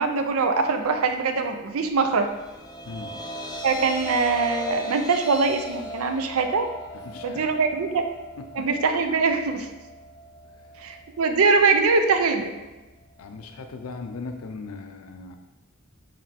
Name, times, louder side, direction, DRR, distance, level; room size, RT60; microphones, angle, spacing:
voice 1, 0.0-2.3 3.6-6.7 7.2-8.1 8.5-9.7 10.8-12.5, right 4 dB, 75° right, 7 dB, 0.5 m, -22 dB
sound 1, 2.2-14.5, left 1 dB, 20° left, 0.3 m, -39 dB
voice 2, 2.9-3.2 6.9-7.4 8.4-8.7 13.2-15.4, left 4 dB, 90° left, 6 dB, 0.5 m, -38 dB
4.8 x 3.2 x 3.4 m, 1.1 s
head